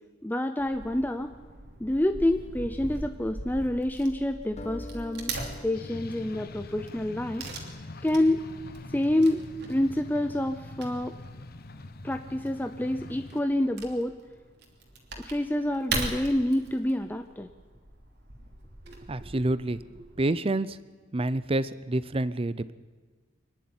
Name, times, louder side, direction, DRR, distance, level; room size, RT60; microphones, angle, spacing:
voice 1, 0.2-1.3 1.8-5.3 5.6-7.5 8.0-8.4 8.9-9.4 9.7-11.1 12.0-14.2 15.2-17.5, left 1 dB, 10° left, 7 dB, 0.6 m, -27 dB
Wood / Tearing, 0.6-20.2, right 3 dB, 60° right, 3.0 m, -41 dB
sound 1, 4.6-7.8, left 1 dB, 35° left, 1.3 m, -47 dB
sound 2, 5.7-13.4, left 2 dB, 55° left, 1.0 m, -44 dB
voice 2, 18.9-20.8 21.1-22.7, right 1 dB, 30° right, 16 dB, 0.6 m, -28 dB
24.5 x 11.0 x 9.6 m, 1.4 s
head